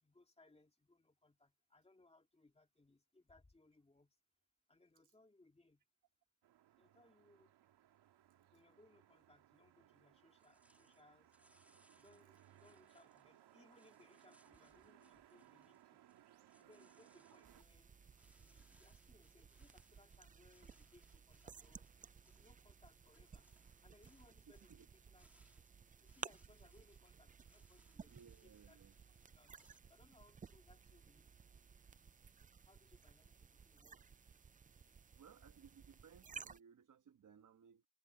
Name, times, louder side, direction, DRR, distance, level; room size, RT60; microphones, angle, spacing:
voice 1, 0.0-4.2 4.7-5.8 6.8-7.5 8.5-11.3 11.9-16.0 16.6-17.9 18.4-21.9 22.3-23.5 23.8-25.6 26.0-28.8 29.1-29.5 29.9-31.4 32.7-34.1, left 2 dB, 15° left, 2.1 m, -69 dB
sound 1, 6.4-17.6, right 12 dB, 75° right, 2.0 m, -67 dB
sound 2, 10.4-29.8, right 1 dB, 5° right, 3.3 m, -75 dB
sound 3, 17.4-36.6, right 6 dB, 20° right, 0.5 m, -57 dB
voice 2, 24.5-24.9 28.0-29.0 35.1-37.9, right 7 dB, 45° right, 1.4 m, -63 dB
cardioid pair, 110°, 40 cm